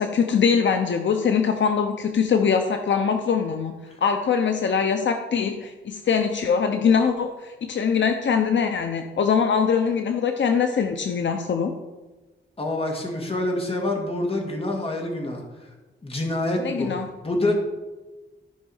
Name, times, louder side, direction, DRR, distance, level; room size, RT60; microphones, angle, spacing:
voice 1, 0.0-3.7 4.0-11.7 16.6-17.1, left 6 dB, 65° left, 5 dB, 0.7 m, -22 dB
voice 2, 12.6-15.7 16.0-16.9 17.2-17.6, left 2 dB, 30° left, 1 dB, 2.2 m, -26 dB
13.5 x 5.4 x 5.5 m, 1.2 s
wide cardioid pair, 130°, 20 cm